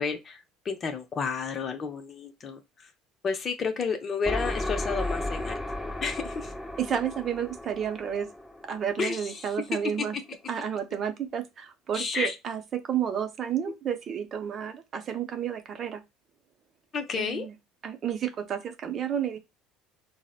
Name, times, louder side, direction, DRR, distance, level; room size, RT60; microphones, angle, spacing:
voice 1, 0.0-2.9 3.2-5.6 6.0-6.5 9.0-9.5 11.9-12.3 16.9-17.5, left 5 dB, 40° left, 0.6 m, -31 dB
sound 1, 4.3-9.9, left 1 dB, 5° left, 1.1 m, -34 dB
voice 2, 6.8-8.3 8.6-10.2 10.5-16.0 17.2-17.5 17.8-19.4, right 8 dB, 45° right, 0.6 m, -31 dB
4.0 x 2.0 x 2.4 m
supercardioid pair, 90°, 0 cm